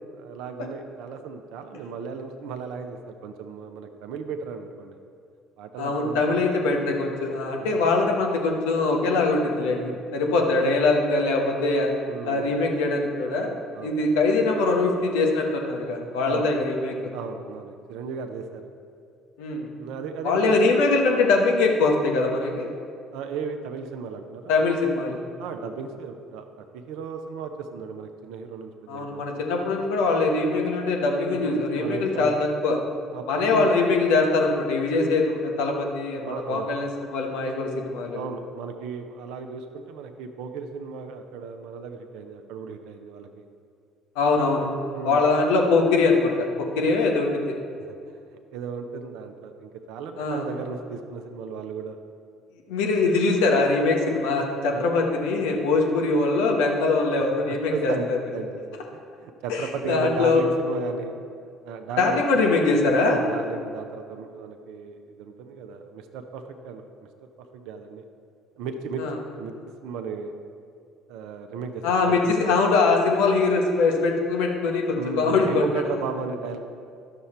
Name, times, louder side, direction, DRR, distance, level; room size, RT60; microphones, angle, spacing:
voice 1, 0.1-5.0 5.6-6.5 7.6-7.9 9.7-10.5 12.1-12.6 13.7-14.0 16.2-16.5 17.1-18.7 19.8-20.6 23.1-24.5 25.4-29.3 31.3-32.4 33.1-33.7 36.2-36.7 38.1-43.5 44.9-45.2 47.8-48.2 48.5-52.0 54.7-54.9 57.5-58.1 58.3-61.2 61.6-62.2 63.0-66.8 67.2-68.0 68.6-69.0 69.4-69.5 69.8-70.3 71.1-72.3 74.9-76.6, right 5 dB, 70° right, 5 dB, 0.6 m, -35 dB
voice 2, 5.8-9.8 10.1-11.9 12.2-16.9 19.4-19.7 20.2-22.7 24.5-25.2 28.9-32.8 33.3-38.2 44.1-44.7 45.0-47.5 50.2-50.4 52.7-58.2 59.5-60.4 62.0-63.2 69.0-69.1 71.8-75.6, left 3 dB, 75° left, 1 dB, 1.2 m, -22 dB
11.0 x 6.9 x 4.3 m, 2.3 s
hypercardioid pair, 55°, 0 cm